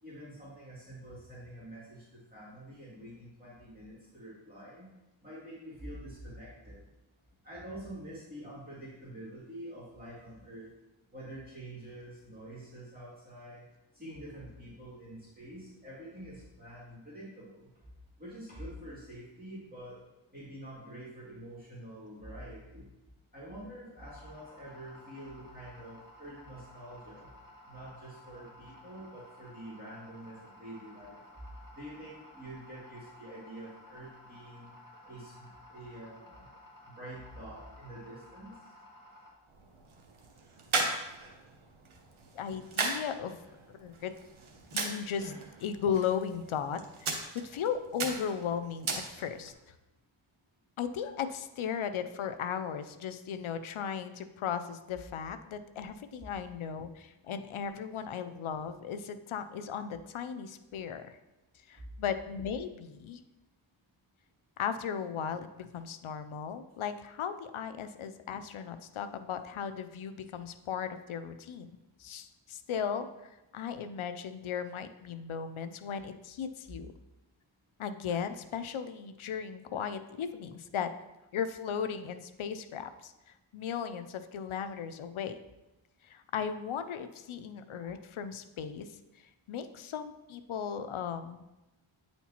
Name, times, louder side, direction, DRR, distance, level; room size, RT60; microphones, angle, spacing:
voice 1, 0.0-4.9 5.2-6.8 7.4-10.7 11.1-13.7 13.9-17.7 18.2-20.0 20.3-22.9 23.3-27.3 27.7-31.2 31.7-34.7 35.0-36.5 36.8-38.6, right 1 dB, 20° right, -9 dB, 2.3 m, -47 dB
sound 1, 24.0-39.3, left 1 dB, 40° left, 1.7 m, -55 dB
sound 2, 39.5-49.5, right 3 dB, 75° right, 1.0 m, -38 dB
voice 2, 42.3-43.4 43.7-44.1 44.7-45.3 45.6-49.5 50.8-61.2 61.7-63.2 64.6-71.7 72.0-76.9 77.8-80.9 81.3-85.4 86.0-88.9 89.5-91.4, left 7 dB, 75° left, 10 dB, 0.6 m, -36 dB
9.0 x 4.4 x 2.9 m, 1.0 s
cardioid pair, 55°, 49 cm